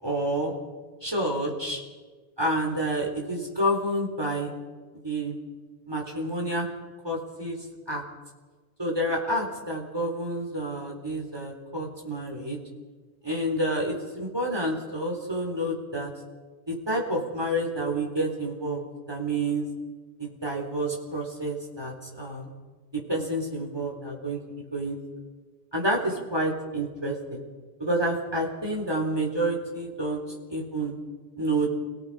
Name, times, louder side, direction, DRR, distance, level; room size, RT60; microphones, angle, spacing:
voice 1, 0.0-0.5 1.0-1.8 2.4-4.5 5.0-5.3 5.8-6.7 7.0-7.6 7.9-8.0 8.8-12.6 13.2-16.1 16.7-19.7 20.2-22.5 22.9-24.4 24.7-25.0 25.7-27.4 27.8-30.2 30.5-31.0 31.4-31.7, right 1 dB, 20° right, 0 dB, 4.2 m, -29 dB
29.5 x 18.5 x 5.1 m, 1.4 s
omnidirectional pair, 1.1 m